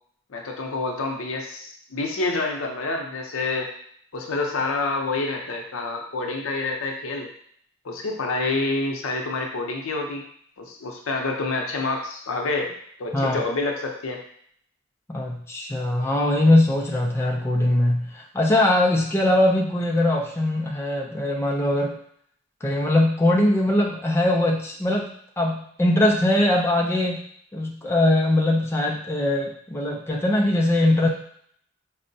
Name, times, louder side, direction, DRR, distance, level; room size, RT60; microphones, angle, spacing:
voice 1, 0.3-3.7 4.1-7.3 7.8-10.2 10.6-12.7 13.0-14.2, left 3 dB, 85° left, 1 dB, 0.6 m, -27 dB
voice 2, 15.1-22.0 22.6-27.2 27.5-31.1, left 1 dB, 10° left, -1 dB, 0.4 m, -21 dB
4.4 x 2.0 x 2.6 m, 0.63 s
head